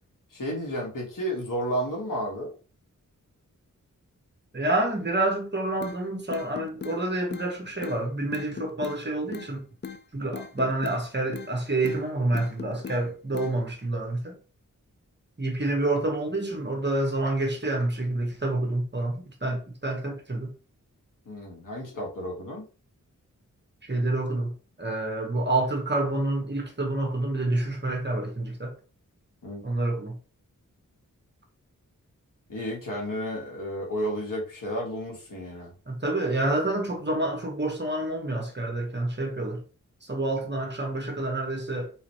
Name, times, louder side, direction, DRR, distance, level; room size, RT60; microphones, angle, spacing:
voice 1, 0.3-2.5 21.3-22.6 29.4-29.6 32.5-35.7, equal, 90° left, 1.9 m, -32 dB
voice 2, 4.5-9.6 10.1-14.4 15.4-20.5 23.8-28.7 29.6-30.2 35.9-39.6 40.1-41.9, right 2 dB, 35° right, 1.4 m, -28 dB
sound 1, 5.8-6.0 6.3-7.0 7.3-7.5 7.8-8.0 8.3-9.0 9.3-9.5 9.8-10.0 10.3-11.0 11.3-11.5 11.8-12.0 12.3-13.0 13.3-13.5, left 6 dB, 35° left, 0.5 m, -38 dB
4.0 x 4.0 x 3.1 m
wide cardioid pair, 90°, 32 cm